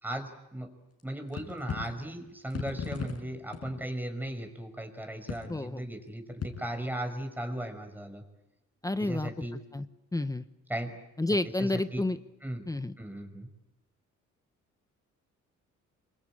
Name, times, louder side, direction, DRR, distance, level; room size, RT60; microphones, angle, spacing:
voice 1, 0.0-0.7 1.0-8.2 9.0-9.6 10.7-10.9 11.6-12.0 12.4-12.7 13.0-13.5, right 1 dB, 5° right, 6 dB, 5.4 m, -37 dB
sound 1, 1.0-1.1 1.3-2.0 2.5-3.8 4.3-4.4 5.3-5.6 6.4-6.8, left 6 dB, 55° left, 5.5 m, -37 dB
voice 2, 5.5-5.8 8.8-9.3 9.7-9.9 10.1-10.4 11.2-12.2 12.7-12.9, left 2 dB, 10° left, 11 dB, 1.0 m, -30 dB
27.5 x 24.0 x 8.8 m, 0.95 s
cardioid pair, 90°, 30 cm